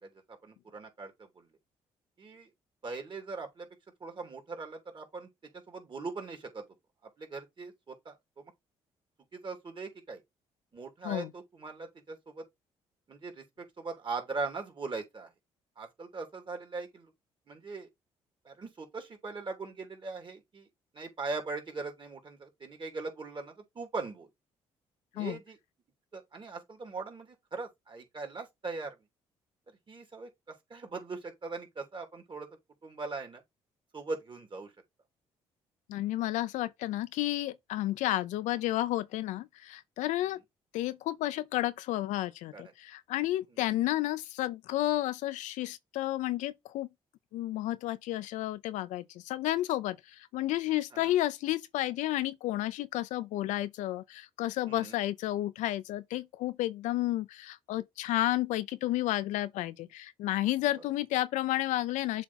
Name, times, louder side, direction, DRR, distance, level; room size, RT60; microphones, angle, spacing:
voice 1, 0.0-1.5 2.2-2.5 2.8-3.7 4.0-6.7 7.0-8.5 9.3-10.2 10.7-12.4 13.1-15.3 15.7-17.1 17.5-17.9 18.4-20.7 20.9-24.3 25.1-25.6 26.1-29.0 29.7-32.5 32.8-33.4 33.9-34.7 40.2-40.4 42.5-42.7 43.5-43.7 50.9-51.1 54.7-55.0 60.8-60.9, right 3 dB, 40° right, 3.0 m, -40 dB
voice 2, 35.9-40.4 40.7-46.9 47.3-62.2, left 15 dB, 75° left, 0.6 m, -31 dB
7.2 x 3.4 x 4.2 m
supercardioid pair, 60°, 13 cm